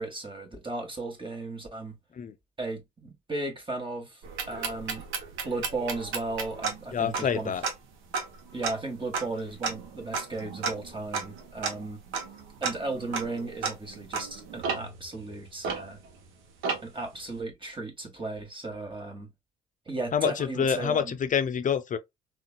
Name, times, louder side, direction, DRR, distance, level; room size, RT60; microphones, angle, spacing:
voice 1, 0.0-2.0 2.6-5.1 5.4-7.5 8.5-12.0 12.6-16.0 16.8-19.3 19.8-21.1, right 2 dB, 25° right, 1.6 m, -35 dB
sound 1, 4.2-16.3 16.6-17.1, right 5 dB, 70° right, 0.9 m, -34 dB
voice 2, 6.9-7.6 20.1-22.0, left 7 dB, 40° left, 0.5 m, -27 dB
3.7 x 2.4 x 2.2 m
hypercardioid pair, 50°, 21 cm